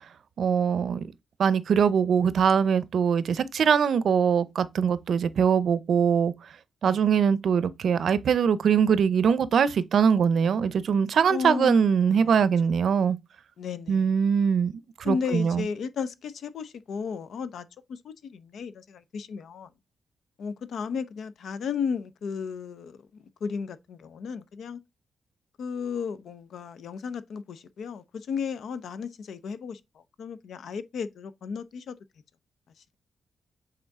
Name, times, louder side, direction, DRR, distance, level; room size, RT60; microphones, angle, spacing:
voice 1, 0.4-1.1 1.4-6.3 6.8-13.2 13.9-14.7 15.0-15.6, right 7 dB, 70° right, 0.6 m, -22 dB
voice 2, 11.3-12.4 13.6-14.1 15.0-19.7 20.4-24.8 25.6-31.9, left 6 dB, 80° left, 0.6 m, -34 dB
7.8 x 3.7 x 3.6 m
wide cardioid pair, 120°, 0 cm